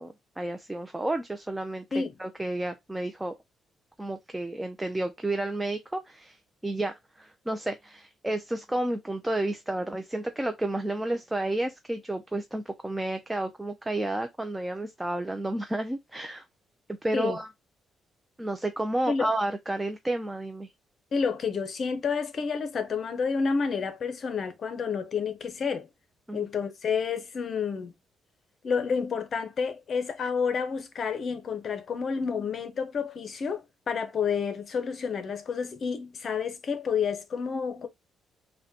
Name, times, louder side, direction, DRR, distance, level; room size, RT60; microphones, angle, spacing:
voice 1, 0.0-3.3 4.0-16.4 17.0-17.5 18.4-20.7 26.3-26.5, right 1 dB, 10° right, 0.5 m, -31 dB
voice 2, 21.1-25.9 26.3-27.9 28.6-37.9, left 5 dB, 50° left, 0.7 m, -29 dB
4.0 x 2.2 x 2.7 m
cardioid pair, 90°, 0 cm